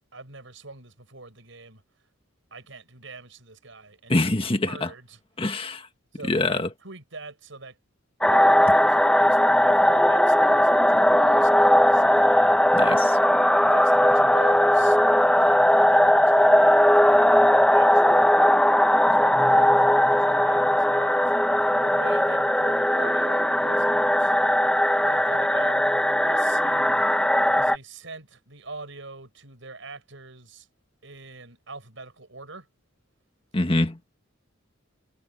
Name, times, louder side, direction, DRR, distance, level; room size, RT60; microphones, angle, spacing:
voice 1, 0.1-1.8 2.5-5.2 6.1-7.8 8.3-12.6 13.7-15.0 15.4-18.3 19.0-21.2 21.8-24.3 25.0-27.1 27.5-30.7 31.0-32.7, right 3 dB, 70° right, 6.1 m, -43 dB
voice 2, 4.1-4.9 5.4-5.9 6.3-6.7 12.7-13.2 33.5-34.0, left 2 dB, 30° left, 1.8 m, -24 dB
sound 1, 8.2-27.8, equal, 5° left, 1.2 m, -19 dB
head